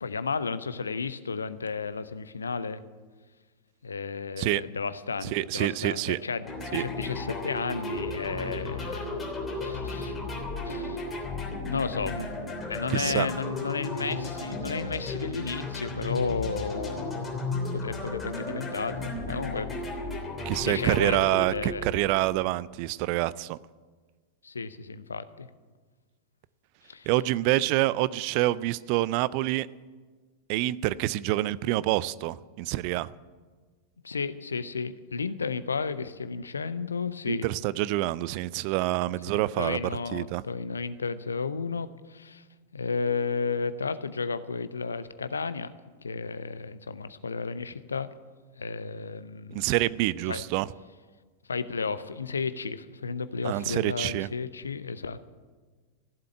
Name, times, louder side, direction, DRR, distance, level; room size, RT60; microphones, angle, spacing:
voice 1, 0.0-2.8 3.8-10.1 10.7-11.0 11.6-12.3 12.7-17.3 17.7-19.7 20.6-21.9 24.4-25.5 26.8-27.1 34.0-37.5 39.3-42.4 42.7-45.7 46.0-48.1 48.5-49.7 50.3-50.4 51.5-55.2, left 5 dB, 75° left, 14 dB, 0.6 m, -33 dB
voice 2, 5.3-6.2 6.7-6.8 12.9-13.3 20.5-23.6 27.1-29.7 30.5-33.1 37.3-39.8 40.1-40.4 49.5-50.7 53.4-54.3, right 17 dB, 45° right, 19 dB, 0.4 m, -27 dB
sound 1, 6.4-22.3, left 2 dB, 15° left, 3.3 m, -34 dB
15.0 x 7.7 x 9.8 m, 1.4 s
figure-of-eight pair, 90°, 0 cm